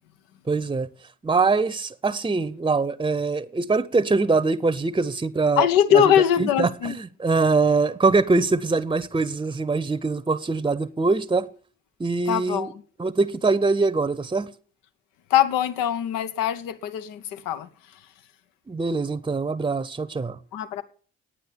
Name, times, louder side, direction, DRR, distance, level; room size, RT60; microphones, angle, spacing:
voice 1, 0.5-0.9 1.2-5.7 5.9-6.0 6.4-11.5 12.0-12.7 13.0-14.5 18.7-20.4, right 3 dB, 15° right, 0.8 m, -23 dB
voice 2, 5.6-7.0 12.3-12.7 15.3-17.7 20.5-20.8, left 10 dB, 70° left, 0.9 m, -22 dB
9.8 x 9.2 x 6.9 m
hypercardioid pair, 40°, 35 cm